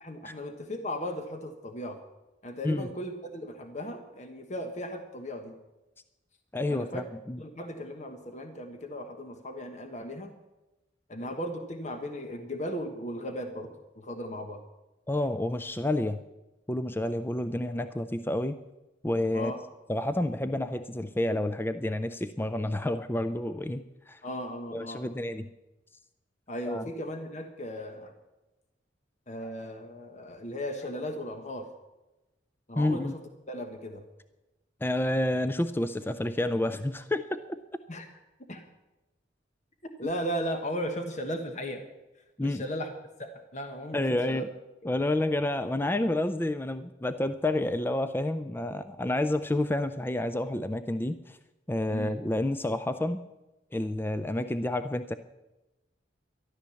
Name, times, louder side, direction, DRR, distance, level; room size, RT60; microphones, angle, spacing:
voice 1, 0.0-2.0 2.4-5.6 6.7-7.0 7.4-10.3 11.1-14.6 19.3-19.6 24.2-25.0 26.5-28.1 29.3-31.7 32.7-33.2 33.5-34.0 37.9-38.1 38.5-38.6 40.0-41.8 42.4-42.9 43.2-44.4 44.8-44.9 51.9-52.1, equal, 40° left, 6 dB, 1.2 m, -36 dB
voice 2, 6.5-7.4 15.1-16.2 16.7-18.6 19.0-19.5 19.9-24.2 24.7-25.5 26.7-26.9 32.8-33.1 34.8-37.6 42.4-42.7 43.9-44.5 44.8-51.4 51.7-53.2 53.7-55.1, left 1 dB, 10° left, 11 dB, 0.4 m, -29 dB
13.5 x 11.5 x 7.0 m, 1.0 s
head